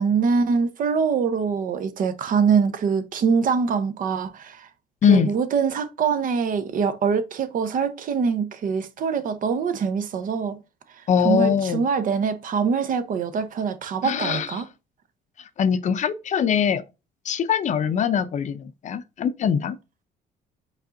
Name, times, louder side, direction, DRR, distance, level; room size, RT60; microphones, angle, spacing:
voice 1, 0.0-4.7 5.1-10.6 11.0-14.7, right 6 dB, 55° right, 0.8 m, -24 dB
voice 2, 11.1-11.9 14.0-14.5 15.6-16.8 17.2-19.8, left 7 dB, 45° left, 0.6 m, -22 dB
5.2 x 4.0 x 2.5 m
cardioid pair, 110°, 17 cm